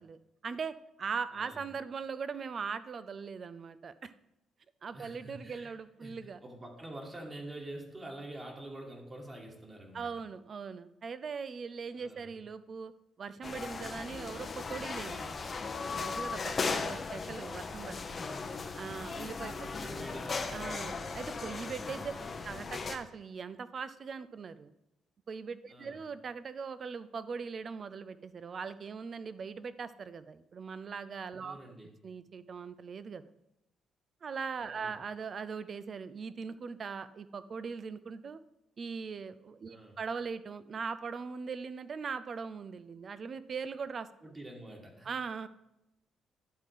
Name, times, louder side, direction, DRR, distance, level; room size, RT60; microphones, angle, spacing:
voice 1, 0.0-4.1 4.8-6.4 9.9-12.9 13.2-15.4 15.8-18.2 18.7-19.7 20.5-22.1 22.4-24.7 25.3-31.6 32.0-33.2 34.2-38.4 38.8-44.1 45.0-45.5, right 5 dB, 45° right, 14 dB, 0.5 m, -40 dB
voice 2, 1.3-1.6 4.9-10.1 12.0-12.3 16.7-17.0 18.1-18.7 19.5-20.7 22.1-22.4 25.7-26.0 31.4-32.0 34.7-35.0 39.7-40.0 44.2-45.1, right 1 dB, 25° right, 0 dB, 1.9 m, -47 dB
sound 1, 13.4-23.0, left 4 dB, 40° left, 0.8 m, -37 dB
11.0 x 3.7 x 4.9 m, 0.86 s
cardioid pair, 90°, 0 cm